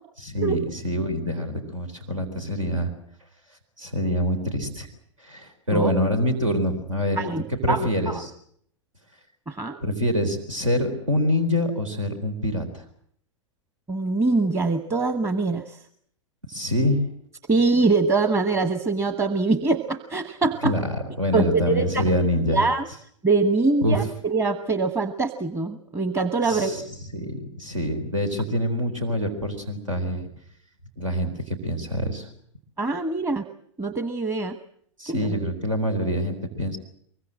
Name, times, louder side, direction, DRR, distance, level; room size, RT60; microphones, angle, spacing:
voice 1, 0.2-2.9 3.8-4.9 5.2-7.2 7.5-8.3 9.8-12.8 16.5-17.1 20.6-22.6 23.8-24.1 26.4-30.3 31.0-32.3 35.0-36.8, equal, 80° right, 7 dB, 4.1 m, -25 dB
voice 2, 7.2-8.2 9.5-9.8 13.9-15.8 17.5-20.8 21.3-22.0 22.5-22.9 23.2-26.8 32.8-33.4 33.8-34.6 35.1-35.4, right 3 dB, 15° right, 10 dB, 1.2 m, -23 dB
24.0 x 22.5 x 7.7 m, 0.66 s
figure-of-eight pair, 100°, 16 cm